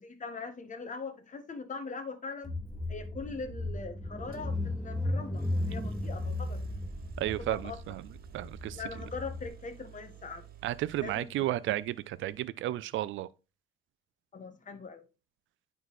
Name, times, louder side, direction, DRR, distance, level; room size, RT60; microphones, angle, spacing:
voice 1, 0.0-2.5 2.9-6.6 7.3-7.8 8.7-10.5 11.0-11.6 14.3-15.0, left 4 dB, 40° left, 1.5 m, -41 dB
Car / Engine, 2.4-9.5, left 1 dB, 5° left, 1.6 m, -36 dB
sound 1, 4.3-4.5 5.3-12.5, right 11 dB, 50° right, 1.3 m, -53 dB
voice 2, 7.2-8.0 8.3-8.8 10.6-13.3, right 14 dB, 75° right, 0.5 m, -33 dB
9.3 x 4.1 x 4.1 m
cardioid pair, 90°, 20 cm